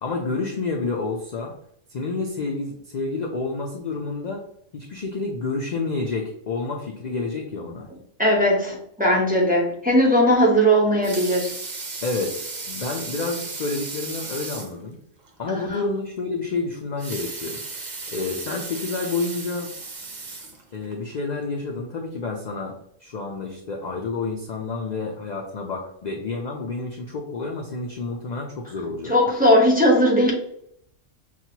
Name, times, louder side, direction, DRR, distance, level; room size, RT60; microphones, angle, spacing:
voice 1, 0.0-1.5 1.9-4.4 4.7-7.9 12.0-15.0 15.4-17.6 18.1-19.7 20.7-22.7 23.0-29.1, left 3 dB, 60° left, 1 dB, 0.4 m, -29 dB
voice 2, 8.2-11.5 15.5-15.8 29.0-30.3, equal, 10° right, -3 dB, 0.7 m, -18 dB
Water tap faucet / Sink (filling or washing) / Liquid, 10.8-14.8 15.2-15.3 15.7-15.8 16.9-21.0 21.6-21.7, right 3 dB, 45° right, 0.7 m, -35 dB
5.9 x 2.4 x 2.8 m, 0.72 s
omnidirectional pair, 1.3 m